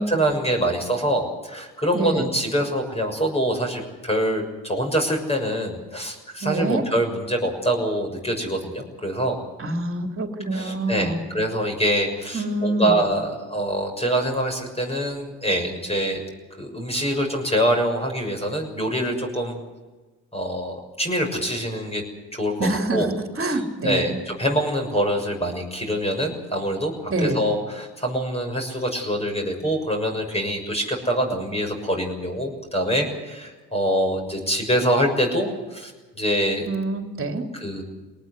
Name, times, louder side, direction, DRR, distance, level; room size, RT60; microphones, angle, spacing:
voice 1, 0.1-9.4 10.5-16.2 16.6-19.6 20.3-22.0 22.3-23.1 23.4-26.9 27.2-35.9 36.2-36.7 37.5-37.8, equal, 15° left, 2 dB, 6.5 m, -25 dB
voice 2, 1.9-2.3 6.4-6.8 9.6-11.2 12.3-12.9 22.6-23.1 23.4-24.2 27.1-27.4 36.7-37.5, right 2 dB, 30° right, 4 dB, 3.6 m, -25 dB
21.0 x 19.0 x 8.2 m, 1.3 s
hypercardioid pair, 60°, 42 cm